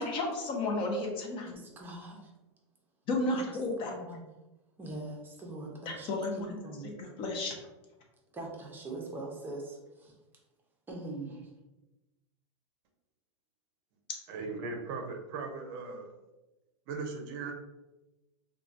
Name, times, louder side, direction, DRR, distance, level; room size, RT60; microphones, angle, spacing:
voice 1, 0.0-1.5 3.1-3.9 5.9-6.6 6.8-7.5, left 2 dB, 35° left, 1 dB, 0.5 m, -32 dB
voice 2, 1.4-2.3 3.3-3.4 3.8-4.2 4.8-6.9 8.3-10.1 10.9-11.5, right 2 dB, 15° right, -2 dB, 0.6 m, -42 dB
voice 3, 14.3-16.1 16.9-17.5, right 4 dB, 50° right, 3 dB, 0.5 m, -38 dB
3.0 x 2.2 x 2.5 m, 1.0 s
hypercardioid pair, 130°, 16 cm